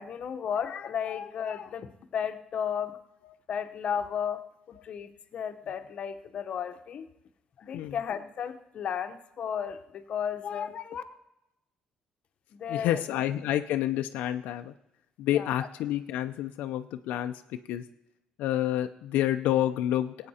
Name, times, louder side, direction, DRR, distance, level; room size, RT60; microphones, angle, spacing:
voice 1, 0.0-3.0 3.5-4.4 4.7-7.1 7.6-11.0 12.5-13.0 15.3-15.5, left 8 dB, 45° left, 8 dB, 0.8 m, -34 dB
voice 2, 12.7-14.7 15.2-17.8 18.4-20.3, left 12 dB, 85° left, 7 dB, 0.5 m, -29 dB
18.0 x 8.7 x 4.2 m, 0.88 s
cardioid pair, 145°, 3 cm